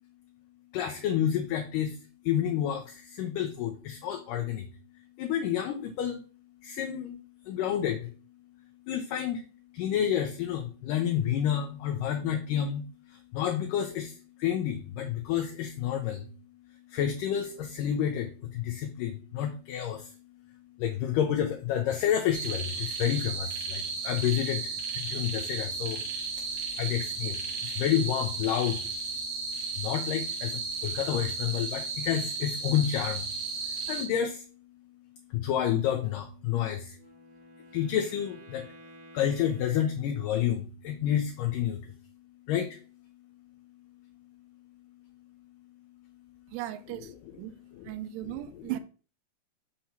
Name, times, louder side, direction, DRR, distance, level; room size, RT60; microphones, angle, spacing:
voice 1, 0.7-2.0 2.3-4.7 5.2-6.2 6.6-7.2 7.5-8.1 8.9-9.4 9.7-16.3 16.9-20.2 20.8-26.0 26.4-28.9 29.8-33.3 33.7-34.5 35.3-37.0 37.7-38.7 39.1-42.0 42.5-42.8 47.8-47.9, left 10 dB, 80° left, 2.0 m, -30 dB
sound 1, 22.3-34.1, right 4 dB, 60° right, 2.8 m, -34 dB
Wind instrument woodwind instrument, 36.9-40.6, right 2 dB, 40° right, 1.7 m, -53 dB
voice 2, 46.5-47.6 47.8-48.8, right 14 dB, 85° right, 1.9 m, -37 dB
6.4 x 2.9 x 5.7 m
omnidirectional pair, 4.4 m